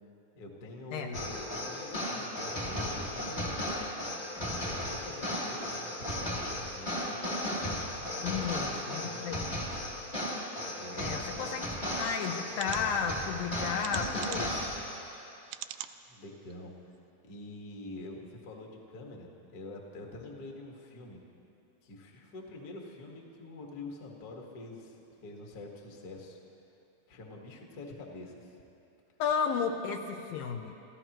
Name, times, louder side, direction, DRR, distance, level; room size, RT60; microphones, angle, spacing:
voice 1, 0.3-3.8 4.5-7.2 8.0-9.3 10.8-11.6 16.1-16.7 17.2-21.2 21.8-26.4 27.1-28.5, left 2 dB, 50° left, -1 dB, 1.1 m, -46 dB
sound 1, 1.1-15.2, left 1 dB, 35° left, 0.6 m, -35 dB
voice 2, 8.2-9.6 11.0-11.7 12.0-14.7 29.2-30.7, left 6 dB, 80° left, 4 dB, 2.2 m, -33 dB
sound 2, 11.8-11.9 12.5-12.8 13.8-14.6 15.5-16.0 16.5-16.6 16.9-17.0, right 14 dB, 85° right, 2.0 m, -42 dB
28.0 x 15.0 x 3.0 m, 2.7 s
omnidirectional pair, 4.5 m